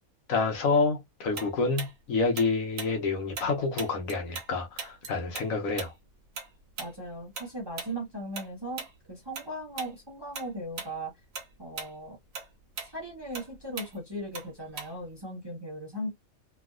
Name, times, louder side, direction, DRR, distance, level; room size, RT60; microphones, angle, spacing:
voice 1, 0.3-5.9, left 4 dB, 70° left, 1.2 m, -28 dB
Tick-tock, 1.4-4.5 4.8-9.5 9.8-10.0 10.3-10.9 11.2-15.2, right 5 dB, 65° right, 1.2 m, -40 dB
voice 2, 6.8-8.8 9.1-11.1 11.6-12.2 12.8-16.1, right 1 dB, 20° right, 0.7 m, -38 dB
3.1 x 2.6 x 2.4 m
omnidirectional pair, 1.5 m